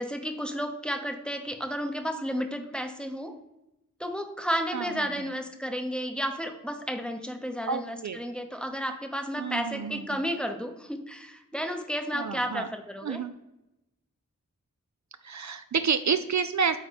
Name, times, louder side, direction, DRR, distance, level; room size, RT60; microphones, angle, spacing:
voice 1, 0.0-3.4 4.0-13.2, equal, 5° left, 5 dB, 0.8 m, -32 dB
voice 2, 4.7-5.1 7.7-8.2 9.4-10.1 12.1-12.7 13.0-13.3 15.2-16.8, right 6 dB, 60° right, 10 dB, 0.4 m, -29 dB
8.3 x 4.3 x 3.4 m, 0.93 s
wide cardioid pair, 70°, 33 cm